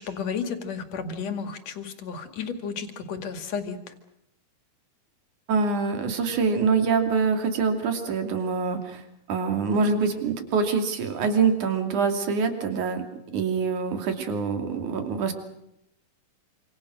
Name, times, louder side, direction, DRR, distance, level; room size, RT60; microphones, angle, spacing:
voice 1, 0.0-3.8, left 6 dB, 60° left, 8 dB, 3.2 m, -32 dB
voice 2, 5.5-9.0 9.3-13.0 13.3-15.3, right 5 dB, 70° right, 6 dB, 4.2 m, -25 dB
27.0 x 26.5 x 6.4 m, 0.80 s
omnidirectional pair, 3.6 m